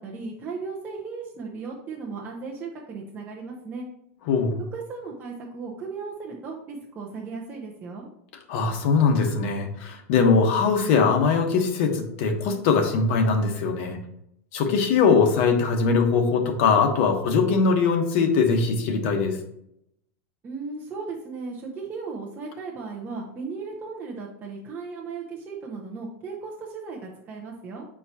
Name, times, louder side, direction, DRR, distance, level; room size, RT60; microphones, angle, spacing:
voice 1, 0.0-3.9 4.7-8.1 20.4-27.9, right 4 dB, 20° right, -3 dB, 0.9 m, -36 dB
voice 2, 4.3-4.6 8.5-14.0 14.5-19.4, left 5 dB, 60° left, 3 dB, 1.2 m, -21 dB
8.1 x 4.5 x 2.9 m, 0.76 s
supercardioid pair, 150°, 8 cm